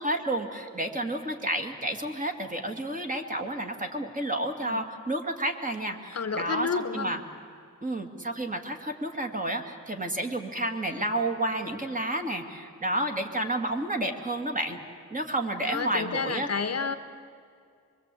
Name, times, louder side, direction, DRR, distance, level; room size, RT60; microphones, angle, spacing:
voice 1, 0.0-7.2 7.8-14.8 15.1-16.5, right 1 dB, 25° right, 3 dB, 2.2 m, -30 dB
voice 2, 6.1-7.2 15.7-17.0, left 5 dB, 50° left, 10 dB, 1.1 m, -30 dB
24.5 x 23.0 x 8.5 m, 2.4 s
wide cardioid pair, 120°, 31 cm